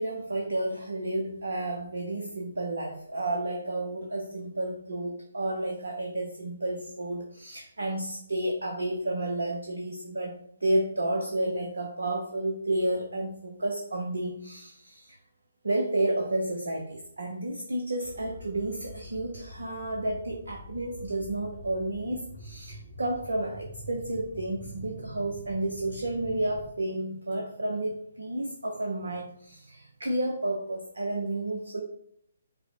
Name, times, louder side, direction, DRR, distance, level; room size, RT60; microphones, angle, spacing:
voice 1, 0.0-10.3 10.6-15.2 15.6-31.8, right 1 dB, 65° right, 2 dB, 0.7 m, -31 dB
sound 1, 18.0-26.7, equal, 20° right, 1.2 m, -46 dB
5.2 x 2.1 x 4.2 m, 0.69 s
figure-of-eight pair, 135°, 0 cm